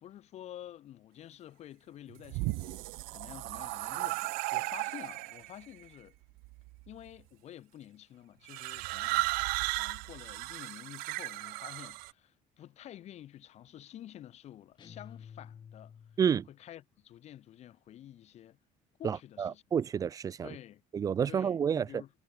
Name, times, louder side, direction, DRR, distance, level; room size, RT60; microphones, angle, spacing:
voice 1, 0.0-6.1 6.9-9.4 9.7-15.9 16.5-18.6 19.0-19.6 20.4-20.8 21.3-22.1, left 12 dB, 45° left, 4.0 m, -50 dB
sound 1, 2.1-5.5 6.4-6.9 8.5-12.1, right 26 dB, 85° right, 0.7 m, -35 dB
sound 2, 14.8-16.5, left 7 dB, 30° left, 3.2 m, -51 dB
voice 2, 19.0-20.6 20.9-22.0, right 7 dB, 25° right, 0.3 m, -30 dB
cardioid pair, 150°, 15 cm